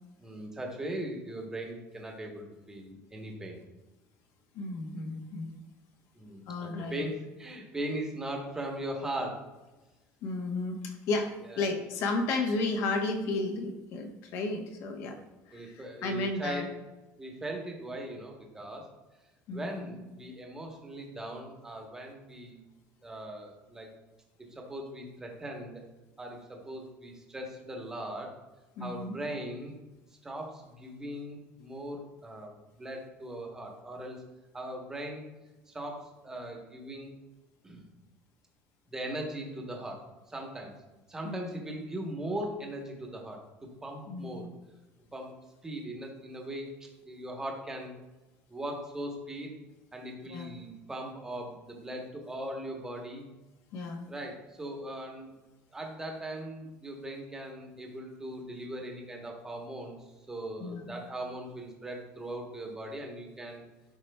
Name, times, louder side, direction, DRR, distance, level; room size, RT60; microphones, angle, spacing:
voice 1, 0.2-3.6 6.1-9.4 11.4-11.7 15.5-16.7 17.2-18.9 19.5-22.6 23.0-23.9 24.5-25.8 26.2-28.3 28.8-29.7 30.2-34.2 34.5-35.3 35.7-37.1 37.6-37.9 38.9-40.0 40.3-40.7 41.1-44.5 45.1-45.3 45.6-46.7 47.0-47.9 48.5-49.5 49.9-53.3 54.1-55.3 55.7-63.6, right 1 dB, 10° right, 1 dB, 1.0 m, -39 dB
voice 2, 4.5-5.5 6.5-7.0 10.2-15.2 15.5-16.6 19.5-19.9 28.8-29.2 41.2-41.6 44.1-44.4 50.3-50.5 53.7-54.1 60.6-60.8, left 3 dB, 55° left, 4 dB, 0.9 m, -33 dB
11.0 x 4.2 x 2.2 m, 1.1 s
cardioid pair, 165°, 5 cm